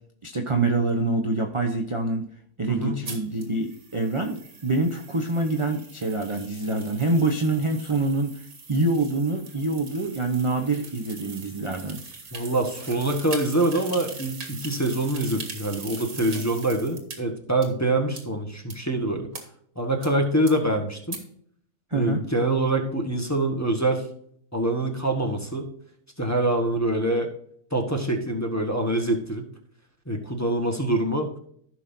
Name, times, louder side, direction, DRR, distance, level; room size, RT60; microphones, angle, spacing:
voice 1, 0.2-2.3 2.6-8.4 8.7-12.0 21.9-22.2, right 2 dB, 25° right, 3 dB, 0.8 m, -25 dB
voice 2, 2.7-3.0 12.3-19.3 19.7-21.2 21.9-24.0 24.5-25.7 26.2-27.3 27.7-29.4 30.1-31.3, right 1 dB, 10° left, 1 dB, 1.3 m, -25 dB
sound 1, 3.1-17.2 17.6-17.7 18.2-18.3 18.7-18.8 19.3-19.4 20.0-20.1 20.5-20.6 21.1-21.2, right 4 dB, 85° right, 2.3 m, -41 dB
15.0 x 6.0 x 2.7 m, 0.64 s
omnidirectional pair, 1.5 m